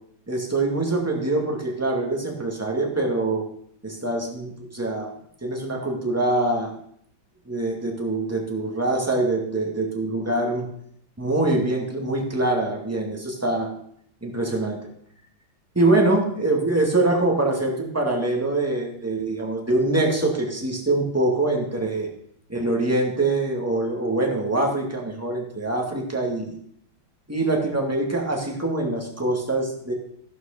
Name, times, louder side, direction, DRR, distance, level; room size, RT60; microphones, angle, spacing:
voice 1, 0.3-3.5 3.8-5.1 5.4-6.7 7.5-10.7 11.2-13.7 14.2-14.8 15.8-22.1 22.5-26.5 27.3-29.9, right 2 dB, 5° right, 0 dB, 2.1 m, -24 dB
15.0 x 6.3 x 6.7 m, 0.69 s
omnidirectional pair, 2.2 m